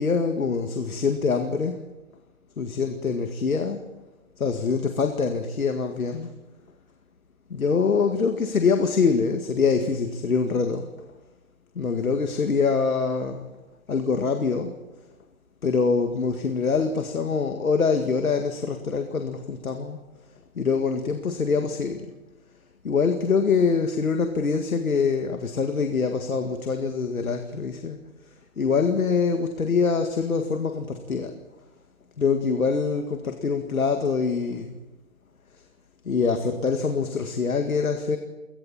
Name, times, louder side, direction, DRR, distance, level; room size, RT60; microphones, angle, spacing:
voice 1, 0.0-1.8 2.6-3.8 4.4-6.3 7.5-10.9 11.8-13.5 13.9-14.7 15.6-20.0 20.6-22.1 22.8-28.0 28.6-31.3 32.2-34.8 36.0-38.2, left 5 dB, 80° left, 6 dB, 2.1 m, -24 dB
29.0 x 22.5 x 4.3 m, 1.1 s
hypercardioid pair, 140°, 42 cm